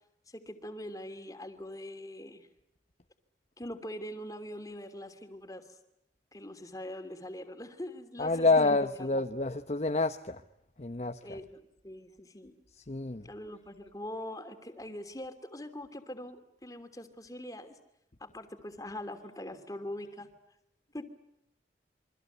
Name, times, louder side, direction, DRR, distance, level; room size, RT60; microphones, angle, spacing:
voice 1, 0.3-2.5 3.6-5.8 6.3-8.7 11.2-12.5 13.2-17.8 18.2-20.3 20.9-21.0, left 1 dB, 20° left, 3.0 m, -43 dB
voice 2, 8.2-10.4 10.8-11.4 12.8-13.3, left 3 dB, 40° left, 1.0 m, -28 dB
28.0 x 24.0 x 8.1 m
head